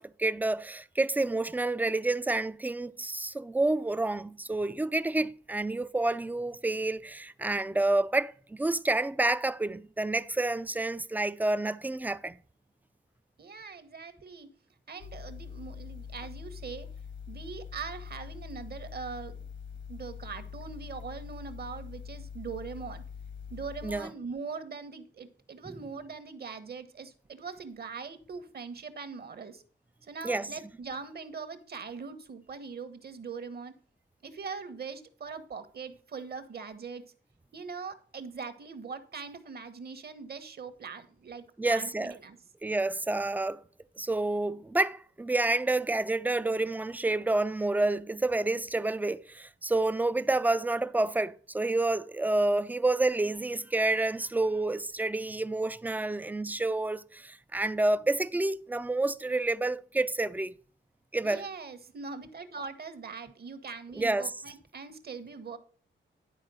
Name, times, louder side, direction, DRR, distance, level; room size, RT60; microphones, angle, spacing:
voice 1, 0.0-12.4 23.8-24.1 25.7-25.8 30.2-30.5 41.6-42.1 42.6-43.6 44.0-60.5 61.1-61.4 64.0-64.3, right 2 dB, 10° right, 0.4 m, -29 dB
voice 2, 13.4-14.5 14.9-16.9 17.3-19.5 19.9-23.0 23.5-29.6 30.1-33.8 34.2-37.0 37.5-42.4 61.2-65.6, right 5 dB, 50° right, 1.2 m, -41 dB
sound 1, 15.0-24.0, left 7 dB, 65° left, 1.1 m, -44 dB
10.5 x 4.4 x 6.2 m
wide cardioid pair, 120°, 20 cm